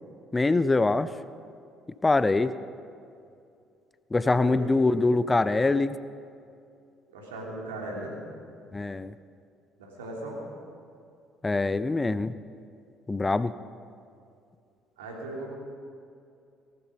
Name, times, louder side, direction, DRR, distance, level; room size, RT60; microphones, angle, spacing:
voice 1, 0.3-1.1 2.0-2.5 4.1-6.0 8.7-9.1 11.4-12.3 13.1-13.5, left 3 dB, 20° left, 15 dB, 0.6 m, -24 dB
voice 2, 4.2-4.9 7.1-8.2 9.8-10.4 15.0-15.5, right 2 dB, 80° right, -1 dB, 2.7 m, -38 dB
18.5 x 12.5 x 5.4 m, 2.5 s
hypercardioid pair, 50°, 0 cm